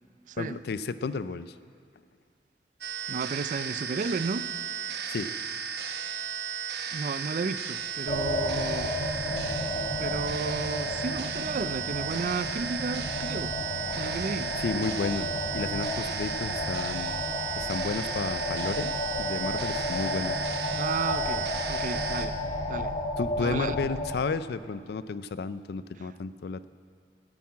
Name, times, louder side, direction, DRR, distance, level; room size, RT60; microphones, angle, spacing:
voice 1, 0.4-1.5 5.1-5.3 14.6-17.2 17.6-20.4 23.2-26.7, left 4 dB, 60° left, 15 dB, 0.4 m, -32 dB
sound 1, 2.8-22.3, right 7 dB, 65° right, 0.8 m, -35 dB
voice 2, 3.1-4.5 6.9-8.9 10.0-13.6 13.9-14.5 20.7-22.4 22.7-22.9 23.4-23.8, right 4 dB, 45° right, 14 dB, 0.3 m, -33 dB
sound 2, 8.1-24.1, left 1 dB, 45° left, 1.9 m, -32 dB
9.5 x 8.9 x 8.4 m, 2.3 s
head